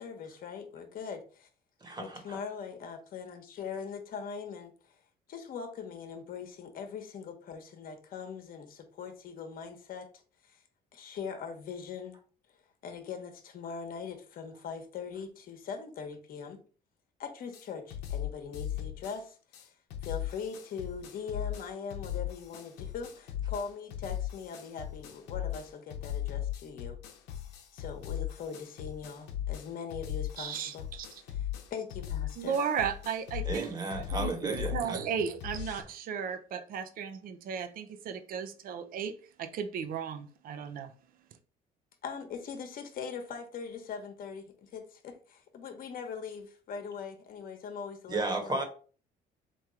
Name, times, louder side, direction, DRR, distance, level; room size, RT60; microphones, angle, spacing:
voice 1, 0.0-1.5 2.0-5.0 5.3-10.1 10.4-10.6 10.9-12.2 12.8-16.6 17.2-19.7 20.0-27.0 27.7-30.9 31.2-32.6 42.0-48.6, left 6 dB, 60° left, 1.0 m, -41 dB
voice 2, 1.8-2.4 33.4-35.0 48.1-48.6, right 2 dB, 25° right, 1.2 m, -33 dB
sound 1, 17.5-17.6 17.9-19.2 19.5-19.6 19.9-35.8, left 11 dB, 90° left, 0.8 m, -38 dB
voice 3, 30.4-31.1 32.4-33.7 34.1-39.1 39.4-40.9, right 7 dB, 60° right, 0.6 m, -35 dB
3.6 x 3.1 x 4.3 m
cardioid pair, 110°, 17 cm